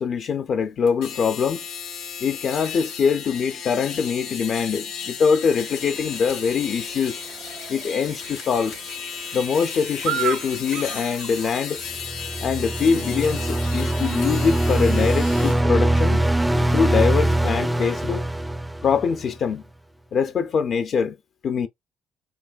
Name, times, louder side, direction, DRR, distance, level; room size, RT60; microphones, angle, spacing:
voice 1, 0.0-1.6 2.2-7.2 7.7-8.8 9.3-11.8 12.4-16.2 16.7-18.2 18.8-19.6 20.1-21.2 21.4-21.7, left 6 dB, 55° left, 0.5 m, -23 dB
sound 1, 0.9-15.6, left 7 dB, 85° left, 2.0 m, -35 dB
Chirp tweet / Buzz, 5.5-15.6, right 11 dB, 70° right, 0.6 m, -37 dB
sound 2, 12.0-19.3, right 1 dB, 10° right, 0.3 m, -22 dB
4.6 x 2.6 x 2.4 m
cardioid pair, 85°, 0 cm